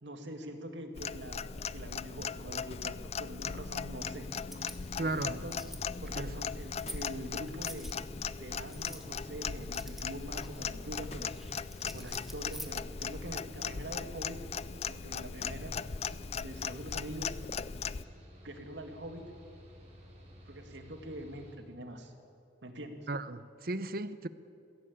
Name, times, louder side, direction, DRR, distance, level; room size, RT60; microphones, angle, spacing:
voice 1, 0.0-4.3 5.1-5.6 6.0-7.9 8.4-11.3 11.9-14.4 14.9-15.8 16.3-17.3 18.4-19.2 20.5-22.1 22.6-23.1, right 1 dB, 75° right, 5 dB, 2.3 m, -44 dB
Clock, 1.0-18.0, left 6 dB, 35° left, 0.4 m, -38 dB
Mechanical fan, 4.1-21.5, equal, 35° right, 5.7 m, -54 dB
sound 1, 4.3-13.3, right 1 dB, ahead, 1.3 m, -51 dB
voice 2, 5.0-5.4 6.2-6.3 23.1-24.3, right 2 dB, 50° right, 14 dB, 0.8 m, -35 dB
21.5 x 16.0 x 8.8 m, 2.7 s
head